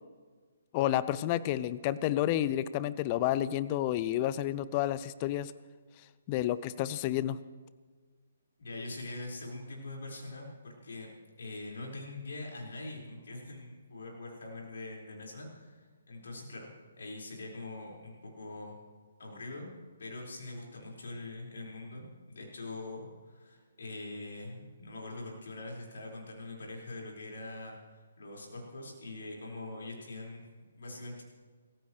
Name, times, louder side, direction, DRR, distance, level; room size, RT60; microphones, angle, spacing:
voice 1, 0.7-5.5 6.3-7.4, left 13 dB, 30° left, 17 dB, 0.6 m, -30 dB
voice 2, 8.6-11.1 11.4-16.7 17.0-18.8 19.2-19.7 20.0-27.8 28.2-31.2, left 2 dB, 60° left, -2 dB, 5.0 m, -43 dB
26.0 x 15.0 x 3.2 m, 1.5 s
figure-of-eight pair, 130°, 0 cm